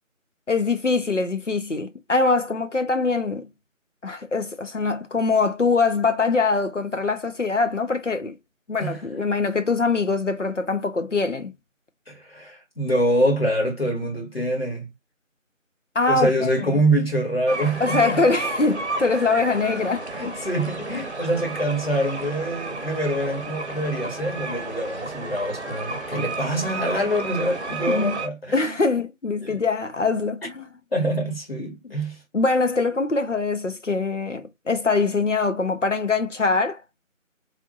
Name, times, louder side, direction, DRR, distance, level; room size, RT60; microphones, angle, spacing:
voice 1, 0.5-3.5 4.0-8.4 8.7-11.5 15.9-16.8 17.8-20.4 27.9-28.2 28.5-30.7 31.8-32.0 32.3-36.8, left 3 dB, 65° left, 1.0 m, -23 dB
voice 2, 12.1-14.9 16.1-18.2 20.1-28.8 29.4-29.6 30.9-32.2, right 1 dB, 45° left, 1.7 m, -25 dB
sound 1, 17.5-28.3, right 3 dB, 55° right, 0.8 m, -32 dB
3.5 x 2.6 x 3.9 m
figure-of-eight pair, 170°, 40 cm